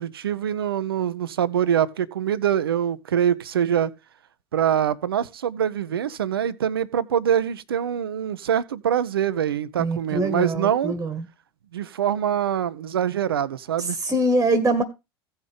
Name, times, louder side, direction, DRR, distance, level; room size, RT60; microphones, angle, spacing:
voice 1, 0.0-3.9 4.5-10.9 11.7-14.0, right 9 dB, 75° right, 0.7 m, -24 dB
voice 2, 9.8-11.2 13.8-14.8, right 1 dB, 15° right, 1.8 m, -23 dB
16.5 x 5.6 x 3.4 m
figure-of-eight pair, 75°, 13 cm